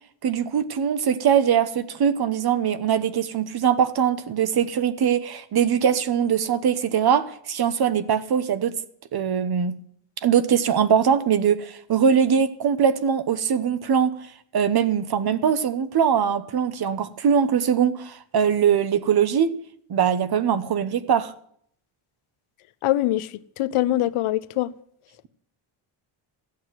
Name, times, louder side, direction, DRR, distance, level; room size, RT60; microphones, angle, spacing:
voice 1, 0.2-8.7 9.1-9.7 10.2-14.2 14.5-19.5 19.9-21.3, right 8 dB, 50° right, 1.1 m, -22 dB
voice 2, 22.8-24.7, left 14 dB, 85° left, 0.8 m, -23 dB
14.5 x 8.6 x 7.6 m
wide cardioid pair, 150°, 49 cm